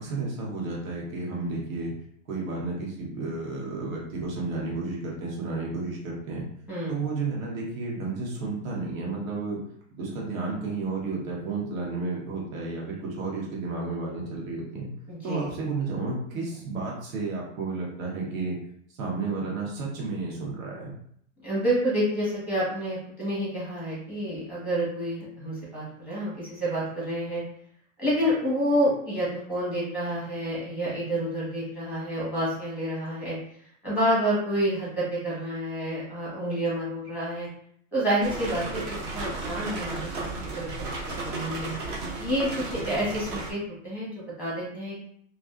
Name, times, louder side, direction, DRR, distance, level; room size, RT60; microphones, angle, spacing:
voice 1, 0.0-1.9 2.3-6.4 6.9-9.6 10.0-14.9 15.2-18.6 19.0-21.0, right 3 dB, 85° right, -3 dB, 1.2 m, -32 dB
voice 2, 15.1-15.5 21.4-27.4 28.0-33.4 33.8-37.5 37.9-40.2 40.5-41.7 42.2-43.6 43.8-44.1 44.4-45.1, equal, 5° right, -7 dB, 0.9 m, -28 dB
sound 1, 38.2-43.5, right 3 dB, 25° right, 0.3 m, -34 dB
2.5 x 2.3 x 2.3 m, 0.66 s
supercardioid pair, 145°, 39 cm